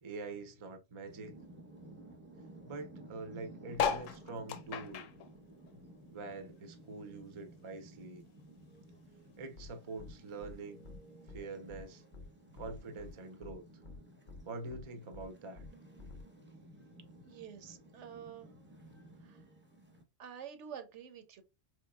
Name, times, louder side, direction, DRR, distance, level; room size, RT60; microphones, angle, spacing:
voice 1, 0.0-1.3 2.6-5.1 6.1-8.2 9.4-10.9 11.3-12.0 12.6-13.6 14.5-15.7, right 3 dB, 35° right, 0.5 m, -45 dB
sound 1, 1.0-20.0, right 1 dB, 10° right, 0.8 m, -56 dB
sound 2, 3.7-6.5 6.8-8.3 8.8-8.9 9.1-9.2 9.4-9.8 10.6-10.7, left 7 dB, 90° left, 1.0 m, -37 dB
sound 3, 9.6-9.7 10.0-10.1 10.4-10.5 10.8-11.0 11.3-11.4 11.7-11.8 12.1-12.3 12.6-13.1 13.4-13.5 13.8-14.0 14.3-14.4 14.7-14.8 15.1-15.3 15.6-15.7 16.0-16.2, left 3 dB, 50° left, 0.6 m, -49 dB
voice 2, 17.2-18.5 19.2-19.5 20.2-21.4, right 8 dB, 70° right, 0.9 m, -48 dB
4.5 x 3.0 x 2.2 m
omnidirectional pair, 1.3 m